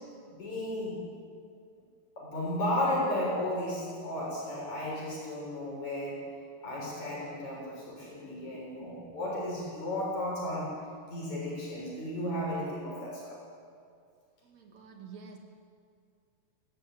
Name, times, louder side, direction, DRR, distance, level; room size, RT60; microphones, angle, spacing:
voice 1, 0.3-1.0 2.2-6.3 6.6-10.7 11.1-13.4, left 1 dB, 70° left, -5 dB, 8.2 m, -34 dB
voice 2, 14.4-15.4, right 5 dB, 65° right, 3 dB, 3.6 m, -48 dB
20.5 x 16.5 x 8.8 m, 2.2 s
omnidirectional pair, 3.4 m